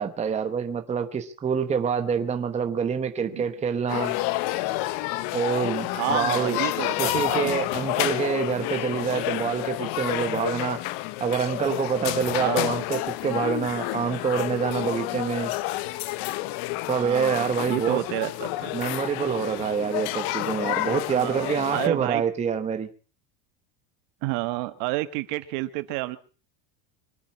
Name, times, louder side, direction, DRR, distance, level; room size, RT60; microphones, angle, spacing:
voice 1, 0.0-4.2 5.3-6.6 7.0-10.8 11.2-15.5 16.9-18.0 18.7-22.9, right 6 dB, 15° right, 6 dB, 1.1 m, -26 dB
sound 1, 3.9-21.9, left 17 dB, 50° left, 1.0 m, -29 dB
voice 2, 5.9-7.5 8.0-8.2 12.4-12.8 17.0-18.7 21.1-22.2 24.2-26.2, right 19 dB, 60° right, 12 dB, 1.4 m, -30 dB
24.5 x 9.0 x 6.1 m, 0.38 s
cardioid pair, 165°, 49 cm